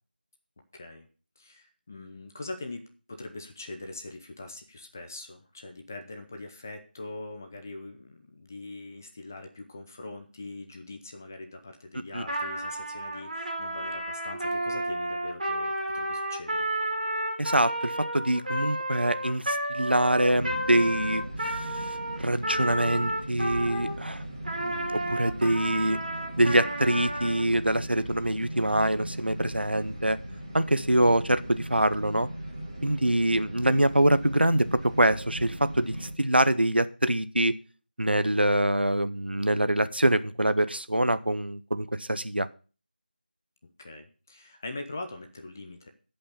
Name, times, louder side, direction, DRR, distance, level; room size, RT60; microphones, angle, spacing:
voice 1, 0.7-1.1 1.4-2.8 3.1-16.7 43.6-45.9, left 2 dB, 15° left, 5 dB, 0.6 m, -42 dB
Trumpet, 12.2-24.0 24.4-27.4, right 1 dB, 50° right, 2.7 m, -32 dB
voice 2, 17.4-21.9 22.2-24.2 24.5-26.0 26.4-30.2 30.5-32.3 32.8-37.5 38.0-42.5, right 1 dB, 90° right, 14 dB, 0.9 m, -25 dB
sound 1, 20.3-36.1, right 1 dB, 25° right, 2.7 m, -39 dB
11.5 x 5.5 x 6.9 m, 0.37 s
figure-of-eight pair, 170°, 5 cm